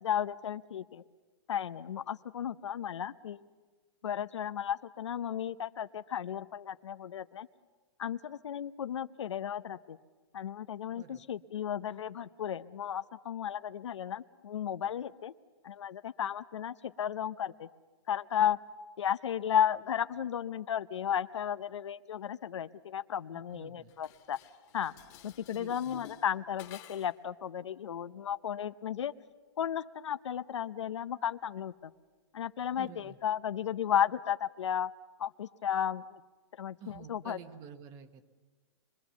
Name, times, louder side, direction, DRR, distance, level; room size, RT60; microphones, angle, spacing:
voice 1, 0.0-1.0 1.5-3.5 4.0-7.5 8.0-10.0 10.3-15.3 15.6-17.7 18.1-18.6 19.0-24.4 24.7-24.9 25.2-29.1 29.6-31.9 32.3-34.9 35.2-36.0 36.6-37.4, left 9 dB, 85° left, 12 dB, 0.8 m, -34 dB
voice 2, 10.9-11.2 23.3-23.9 25.5-26.1 32.7-33.2 36.8-38.2, right 7 dB, 20° right, 10 dB, 1.2 m, -50 dB
Dishes pots and pans, 23.9-27.3, left 11 dB, 35° left, 1.7 m, -53 dB
26.0 x 23.0 x 7.1 m, 1.3 s
hypercardioid pair, 165°, 15 cm